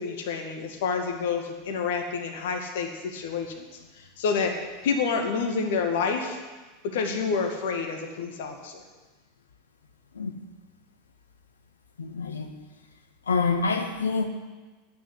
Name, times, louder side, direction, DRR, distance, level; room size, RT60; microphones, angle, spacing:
voice 1, 0.0-3.7 3.9-6.4 6.9-8.8, left 5 dB, 60° left, 3 dB, 2.0 m, -28 dB
voice 2, 12.0-12.5 13.3-14.2, left 4 dB, 80° left, 5 dB, 1.5 m, -26 dB
9.7 x 9.2 x 9.8 m, 1.3 s
figure-of-eight pair, 85°, 0 cm